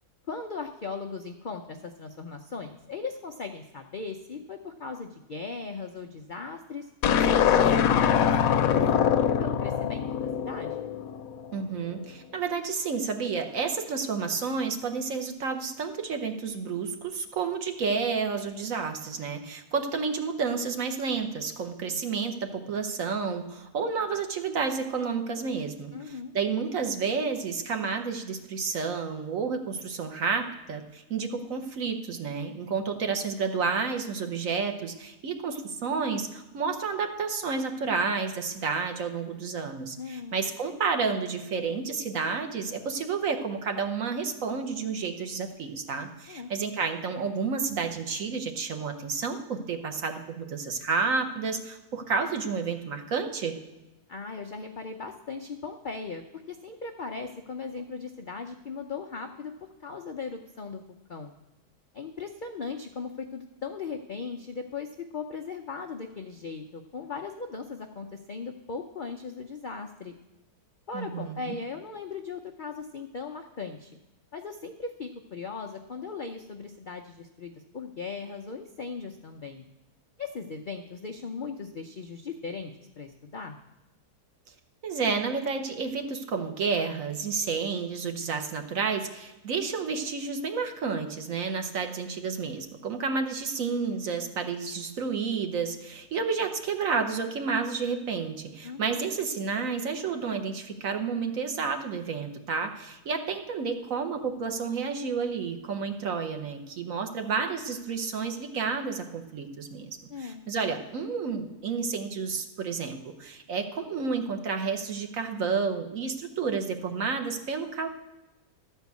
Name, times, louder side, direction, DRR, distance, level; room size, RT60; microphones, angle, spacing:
voice 1, 0.3-10.9 25.9-26.3 40.0-40.4 46.3-46.5 54.1-59.5 59.8-60.8 61.1-61.3 61.9-70.1 70.9-74.0 74.3-79.6 80.2-83.6 98.6-99.0 110.1-110.4, left 4 dB, 85° left, 4 dB, 0.4 m, -38 dB
sound 1, 7.0-11.4, left 8 dB, 70° left, 1.0 m, -23 dB
voice 2, 11.5-53.6 70.9-71.6 84.8-109.9 110.2-117.9, right 5 dB, 60° right, 6 dB, 1.3 m, -30 dB
12.5 x 4.5 x 8.2 m, 0.99 s
omnidirectional pair, 1.8 m